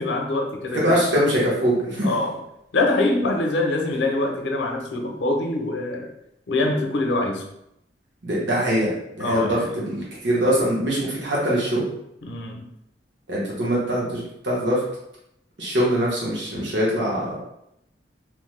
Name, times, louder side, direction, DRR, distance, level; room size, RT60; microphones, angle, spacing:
voice 1, 0.0-0.9 2.0-2.4 2.7-6.1 6.5-7.4 9.2-9.8 12.2-12.6, left 2 dB, 80° left, 2 dB, 0.5 m, -24 dB
voice 2, 0.7-2.1 8.2-8.9 9.2-11.9 13.3-14.8 15.6-17.4, equal, 85° right, -5 dB, 0.9 m, -22 dB
3.0 x 2.1 x 3.1 m, 0.79 s
head